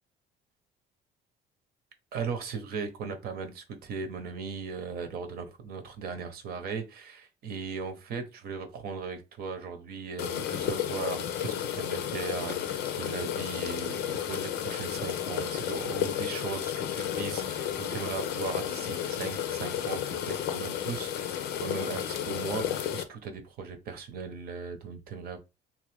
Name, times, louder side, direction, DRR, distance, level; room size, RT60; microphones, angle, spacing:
voice 1, 2.1-25.4, right 5 dB, 65° right, 7 dB, 0.8 m, -38 dB
sound 1, 10.2-23.0, left 10 dB, 80° left, 0.5 m, -32 dB
2.9 x 2.5 x 3.3 m, 0.27 s
cardioid pair, 110°, 17 cm